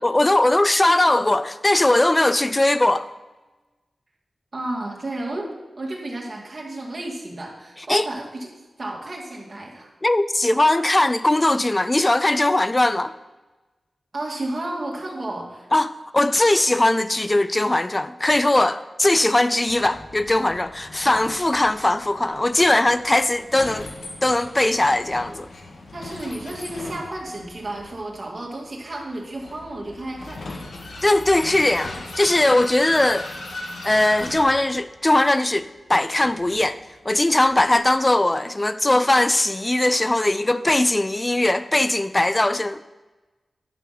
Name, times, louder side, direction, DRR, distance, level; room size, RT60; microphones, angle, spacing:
voice 1, 0.0-3.1 7.9-8.1 10.0-13.1 15.7-23.9 24.2-25.5 31.0-33.3 33.8-36.8 37.1-42.8, left 1 dB, 25° left, 0.3 m, -20 dB
voice 2, 4.5-5.5 5.8-8.5 8.8-9.9 14.1-15.7 25.9-30.4, right 1 dB, 50° right, 2.5 m, -32 dB
Vehicle, 19.7-37.7, left 2 dB, 90° left, 1.5 m, -39 dB
11.0 x 6.2 x 6.0 m
wide cardioid pair, 75°, 0 cm